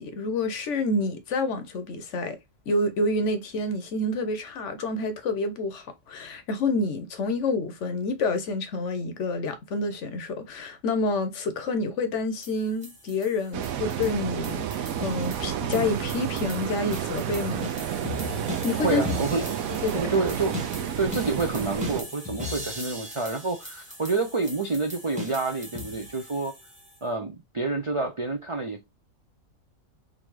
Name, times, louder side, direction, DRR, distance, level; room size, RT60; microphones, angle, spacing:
voice 1, 0.0-2.4 2.7-17.7 18.6-19.0 19.3-19.4 19.8-20.0, left 2 dB, 65° left, 1.0 m, -28 dB
sound 1, 12.4-27.0, left 2 dB, 5° right, 1.0 m, -39 dB
sound 2, 13.5-22.0, right 9 dB, 80° right, 1.1 m, -31 dB
voice 2, 18.8-19.4 19.9-20.6 21.0-26.5 27.0-28.8, right 3 dB, 50° right, 0.3 m, -28 dB
3.8 x 2.7 x 4.6 m
omnidirectional pair, 1.5 m